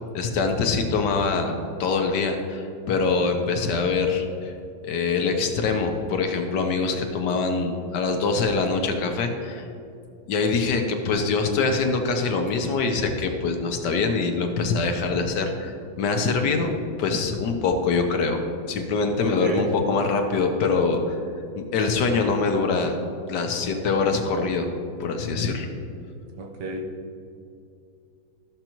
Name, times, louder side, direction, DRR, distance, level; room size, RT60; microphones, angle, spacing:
voice 1, 0.1-4.5 4.8-9.6 10.3-18.4 18.7-21.2 21.5-23.0 23.3-24.7 25.0-25.7, left 4 dB, 65° left, 4 dB, 1.3 m, -24 dB
voice 2, 19.2-19.7 26.3-26.9, right 2 dB, 65° right, 1 dB, 1.6 m, -30 dB
14.0 x 6.6 x 3.0 m, 2.5 s
omnidirectional pair, 2.0 m